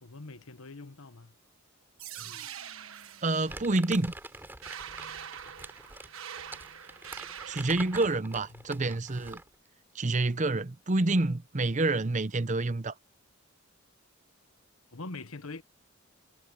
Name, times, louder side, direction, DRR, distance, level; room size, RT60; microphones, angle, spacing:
voice 1, 0.0-1.3 8.5-8.6 14.9-15.6, left 3 dB, 85° left, 1.3 m, -43 dB
sound 1, 2.0-8.0, right 9 dB, 80° right, 1.4 m, -44 dB
voice 2, 3.2-4.1 7.5-9.4 9.9-12.9, right 2 dB, 35° right, 0.7 m, -28 dB
Crumpling crinkling, 3.5-9.5, right 2 dB, 10° right, 3.9 m, -45 dB
head